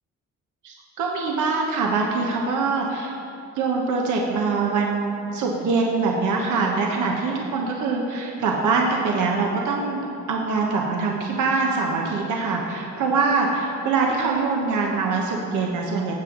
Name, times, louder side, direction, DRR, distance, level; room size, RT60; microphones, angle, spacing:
voice 1, 0.6-3.1 3.5-10.0 10.3-16.1, right 4 dB, 80° right, -1 dB, 1.2 m, -23 dB
15.5 x 7.8 x 3.9 m, 2.7 s
cardioid pair, 90°, 30 cm